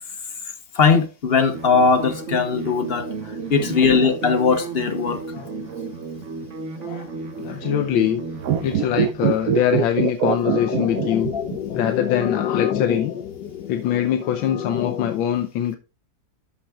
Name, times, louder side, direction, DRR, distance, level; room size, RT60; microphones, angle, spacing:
voice 1, 0.7-3.1 3.5-5.2 11.3-11.4, left 5 dB, 45° left, 0.8 m, -19 dB
sound 1, 1.5-8.7, right 4 dB, 45° right, 1.3 m, -33 dB
voice 2, 7.4-8.2 8.6-11.3 11.7-13.2 13.7-15.8, left 10 dB, 90° left, 1.5 m, -23 dB
sound 2, 8.4-11.8 12.0-12.1, right 9 dB, 70° right, 0.8 m, -23 dB
sound 3, 10.2-15.2, left 9 dB, 70° left, 1.3 m, -28 dB
12.5 x 6.0 x 2.3 m
omnidirectional pair, 2.1 m